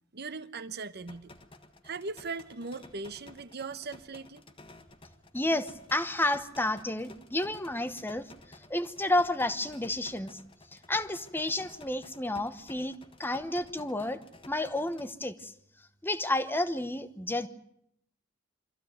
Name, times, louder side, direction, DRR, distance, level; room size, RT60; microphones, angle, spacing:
voice 1, 0.1-1.3 1.8-4.4, right 4 dB, 50° right, 1.1 m, -39 dB
sound 1, 1.1-15.1, left 2 dB, 25° left, 1.6 m, -54 dB
voice 2, 5.3-10.4 10.7-14.2 14.5-15.5 15.8-17.5, left 1 dB, 10° left, 1.0 m, -31 dB
24.5 x 15.0 x 9.4 m
head